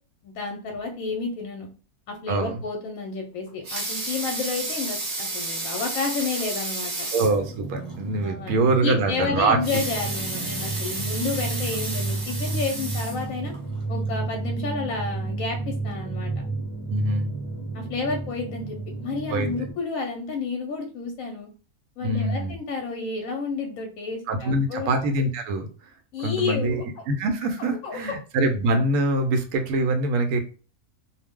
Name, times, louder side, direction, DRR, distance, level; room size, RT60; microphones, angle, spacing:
voice 1, 0.2-1.7 2.1-7.1 8.2-13.5 13.9-16.3 17.7-21.5 22.0-24.9 26.1-26.8 27.6-28.0, left 4 dB, 70° left, 2 dB, 0.9 m, -31 dB
voice 2, 2.3-2.6 7.1-9.6 16.9-17.3 19.3-19.6 22.0-22.6 24.3-25.7 26.2-30.4, right 2 dB, 80° right, 6 dB, 1.0 m, -24 dB
Water tap faucet / Sink (filling or washing) / Liquid, 3.4-7.4 7.9-8.0 8.3-8.4 9.5-13.6 14.2-14.3, right 2 dB, 45° right, 0.7 m, -32 dB
sound 1, 7.3-19.7, right 3 dB, 35° left, 0.4 m, -32 dB
2.5 x 2.0 x 3.5 m, 0.38 s
omnidirectional pair, 1.6 m